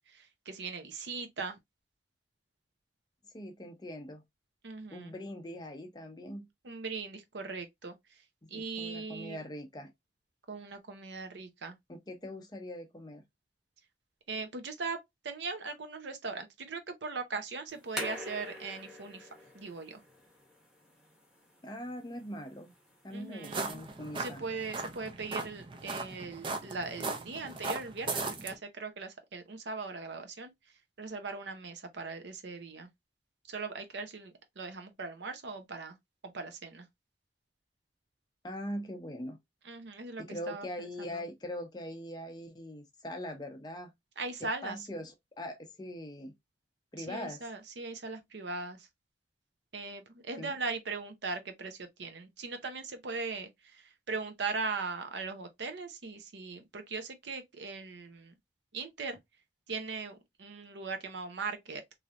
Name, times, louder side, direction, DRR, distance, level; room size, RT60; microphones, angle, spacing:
voice 1, 0.0-1.6 4.6-5.1 6.6-7.9 8.5-9.4 10.5-11.7 14.3-15.0 15.2-19.3 19.5-20.0 23.1-23.8 24.2-30.5 31.0-32.9 33.5-36.0 36.2-36.9 39.6-41.2 44.2-44.8 47.0-48.9 49.7-58.3 58.7-59.2 59.7-61.8, right 4 dB, 80° right, 0.7 m, -39 dB
voice 2, 3.3-4.2 4.9-6.5 8.4-9.9 11.9-13.2 21.6-22.7 23.0-24.4 38.4-39.4 40.2-43.9 44.4-46.3 46.9-47.4 50.4-50.6, left 1 dB, 25° left, 0.6 m, -42 dB
sound 1, 17.7-24.3, left 1 dB, 5° right, 1.0 m, -46 dB
sound 2, 23.4-28.5, right 3 dB, 30° right, 0.5 m, -38 dB
3.2 x 2.7 x 2.3 m
head